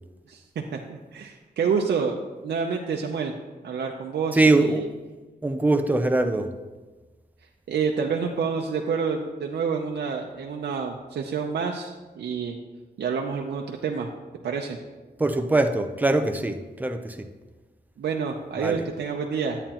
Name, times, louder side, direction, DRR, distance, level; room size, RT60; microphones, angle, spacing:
voice 1, 0.3-3.3 3.6-4.9 7.7-12.6 13.0-14.1 14.4-14.8 18.0-19.6, right 5 dB, 90° right, 1 dB, 0.6 m, -28 dB
voice 2, 4.3-4.9 5.4-6.5 15.2-17.3 18.6-18.8, right 2 dB, 10° right, 6 dB, 0.5 m, -22 dB
11.0 x 8.9 x 2.9 m, 1.3 s
wide cardioid pair, 155°, 18 cm